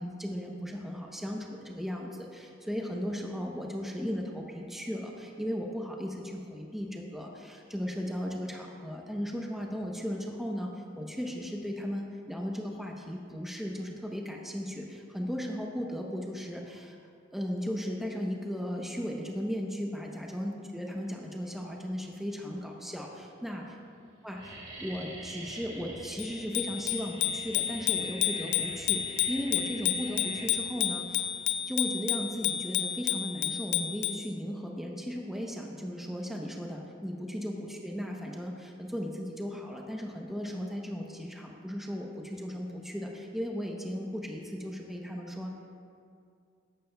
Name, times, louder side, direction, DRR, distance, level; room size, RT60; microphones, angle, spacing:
voice 1, 0.0-14.9 15.1-17.0 17.3-23.6 24.2-31.4 31.7-45.5, equal, ahead, 0 dB, 0.7 m, -36 dB
sound 1, 21.7-22.3 23.0-23.1 23.3-23.7 24.0-32.9, right 2 dB, 35° right, 1.9 m, -46 dB
Bicycle bell, 26.2-34.3, left 11 dB, 55° left, 0.4 m, -31 dB
14.0 x 11.5 x 2.2 m, 2.3 s
head